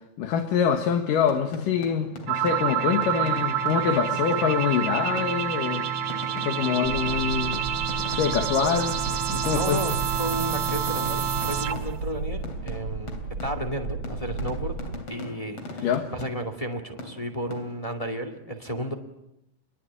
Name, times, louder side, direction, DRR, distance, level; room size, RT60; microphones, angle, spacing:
voice 1, 0.2-5.9 6.3-7.6 8.0-9.0 9.3-9.8 15.8-16.1, left 7 dB, 80° left, 4 dB, 3.2 m, -25 dB
sound 1, 1.3-4.8 5.2-5.6 6.1-12.2 12.4-16.7 17.0-18.0, left 2 dB, 45° left, 3.9 m, -42 dB
sound 2, 2.3-12.0, right 8 dB, 65° right, 2.5 m, -28 dB
sound 3, 6.8-15.0, right 3 dB, 45° right, 3.1 m, -34 dB
voice 2, 9.5-13.2 13.4-14.7 15.1-18.9, equal, 10° left, 6 dB, 2.0 m, -33 dB
28.0 x 21.5 x 8.7 m, 0.83 s
omnidirectional pair, 3.8 m